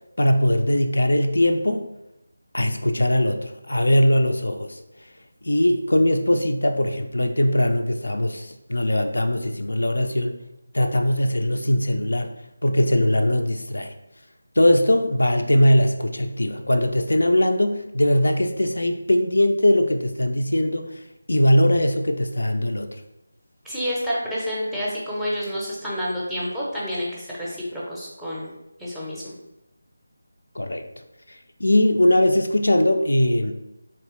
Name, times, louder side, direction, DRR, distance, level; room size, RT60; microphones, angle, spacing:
voice 1, 0.2-1.9 2.5-4.8 5.4-10.4 10.7-12.3 12.6-13.9 14.6-21.0 21.3-22.9 30.6-30.8 31.3-33.5, left 1 dB, 65° left, 5 dB, 0.3 m, -20 dB
voice 2, 23.6-28.5 28.8-29.3, equal, 5° right, -6 dB, 0.6 m, -29 dB
3.4 x 2.9 x 3.0 m, 0.89 s
figure-of-eight pair, 160°, 0 cm